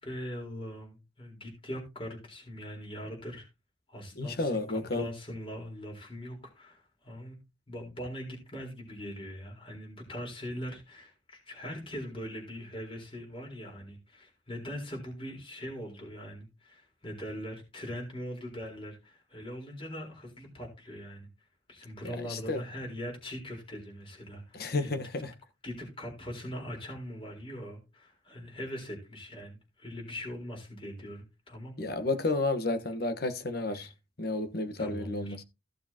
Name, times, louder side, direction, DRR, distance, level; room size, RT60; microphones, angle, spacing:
voice 1, 0.0-3.5 3.9-7.4 7.7-21.3 21.7-24.9 25.6-31.7 33.7-33.9 34.8-35.4, equal, 30° left, 4.3 m, -41 dB
voice 2, 4.2-5.1 22.3-22.6 24.5-25.3 31.8-33.9 34.2-35.4, left 2 dB, 55° left, 1.3 m, -31 dB
16.0 x 6.8 x 2.9 m
head